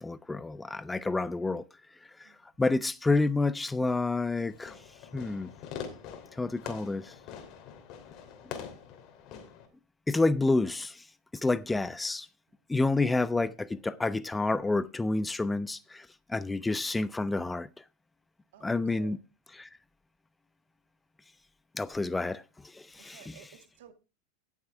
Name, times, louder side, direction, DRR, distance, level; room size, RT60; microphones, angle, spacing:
voice 1, 0.0-1.6 2.2-2.3 2.6-4.7 5.1-5.5 6.4-7.1 10.1-11.0 11.4-12.3 12.7-17.7 18.6-19.2 19.6-19.7 21.7-23.4, left 3 dB, 10° left, 0.5 m, -29 dB
Fireworks, 4.5-9.7, left 8 dB, 50° left, 2.8 m, -44 dB
voice 2, 18.5-19.2 23.0-23.9, right 10 dB, 70° right, 1.9 m, -55 dB
17.0 x 7.3 x 3.3 m
hypercardioid pair, 100°, 0 cm